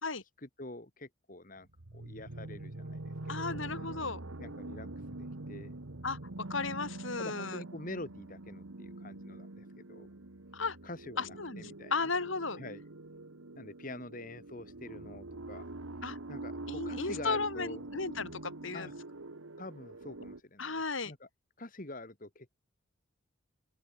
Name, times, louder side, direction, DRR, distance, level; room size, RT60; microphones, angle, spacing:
voice 1, 0.4-3.6 4.4-4.9 5.2-5.7 7.2-10.1 10.8-12.1 12.6-12.8 13.6-15.8 16.3-17.9 18.7-18.9 19.6-21.3 21.6-22.5, left 2 dB, 40° left, 1.9 m, -46 dB
sound 1, 1.7-20.4, right 2 dB, 85° right, 1.6 m, -44 dB
voice 2, 3.3-4.2 6.0-7.6 10.5-10.8 11.2-12.6 16.0-16.2 16.7-18.9 20.6-21.1, left 4 dB, 70° left, 2.9 m, -35 dB
open air
head